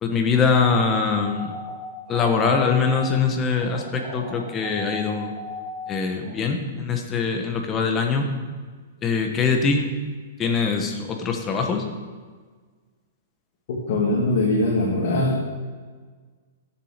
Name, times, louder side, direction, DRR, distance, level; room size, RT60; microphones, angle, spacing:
voice 1, 0.0-1.5 2.1-5.3 5.9-8.3 9.0-9.9 10.4-11.9, left 5 dB, 15° left, 3 dB, 1.1 m, -23 dB
sound 1, 0.5-6.3, left 1 dB, 30° right, 3.0 m, -37 dB
voice 2, 13.7-15.4, left 2 dB, 50° left, -4 dB, 2.2 m, -22 dB
11.0 x 7.2 x 6.6 m, 1.5 s
hypercardioid pair, 170°, 0 cm